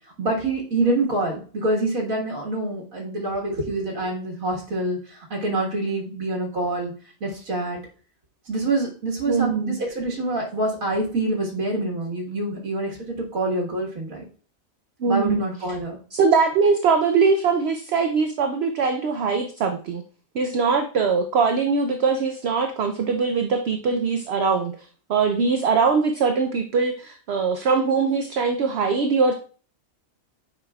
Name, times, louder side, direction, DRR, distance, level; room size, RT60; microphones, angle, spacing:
voice 1, 0.2-6.9 7.2-7.8 8.5-14.2 15.1-16.0, right 2 dB, 80° right, -2 dB, 1.9 m, -26 dB
voice 2, 9.3-9.8 15.0-15.5 16.1-20.0 20.3-29.3, right 5 dB, 60° right, 6 dB, 0.8 m, -22 dB
8.9 x 5.3 x 2.3 m, 0.40 s
omnidirectional pair, 1.4 m